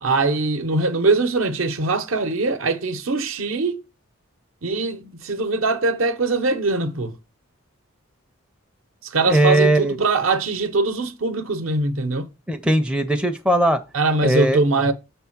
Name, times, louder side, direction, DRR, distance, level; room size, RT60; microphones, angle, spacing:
voice 1, 0.0-3.8 4.6-7.1 9.0-12.3 13.9-14.9, right 3 dB, 70° right, 0.8 m, -22 dB
voice 2, 9.3-10.0 12.5-13.8 14.2-14.6, right 1 dB, 5° right, 0.4 m, -19 dB
6.3 x 3.4 x 5.9 m
head